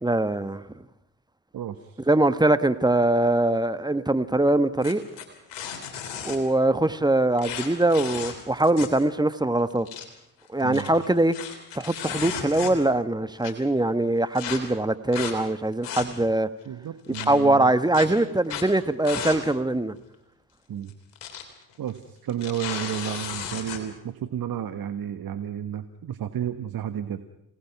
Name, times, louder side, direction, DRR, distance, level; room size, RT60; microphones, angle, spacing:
voice 1, 0.0-0.6 2.1-5.0 6.2-9.9 10.5-11.3 11.7-16.5 17.1-19.9, right 2 dB, 10° right, 12 dB, 1.2 m, -22 dB
voice 2, 1.5-2.1 10.6-10.9 16.6-17.7 20.7-20.9 21.8-27.2, right 10 dB, 55° right, 10 dB, 1.4 m, -32 dB
sound 1, 4.8-6.4 7.4-9.0 9.3-9.4 9.7-10.0 10.6-13.0 13.4-13.5 14.3-14.6 15.1-15.3 15.7-16.4 17.1-17.3 17.9-18.1 18.4-18.7 19.0-19.4 19.7-19.8 20.9-21.4 21.7-21.9 22.3-23.8, left 8 dB, 70° left, 3.3 m, -34 dB
28.0 x 18.0 x 6.0 m, 0.81 s
hypercardioid pair, 50°, 43 cm